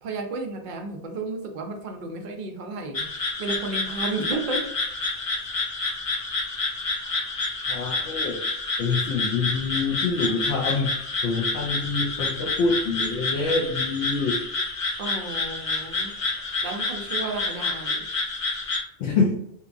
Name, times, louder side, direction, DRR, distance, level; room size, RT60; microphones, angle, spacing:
voice 1, 0.0-4.7 7.0-7.3 15.0-16.1 16.6-18.0, right 3 dB, 60° right, 4 dB, 0.5 m, -33 dB
sound 1, 2.9-18.8, left 3 dB, 55° left, 0.3 m, -29 dB
voice 2, 7.7-8.4 8.8-14.4 19.0-19.3, left 4 dB, 75° left, -2 dB, 0.8 m, -26 dB
2.8 x 2.4 x 2.4 m, 0.72 s
omnidirectional pair, 1.2 m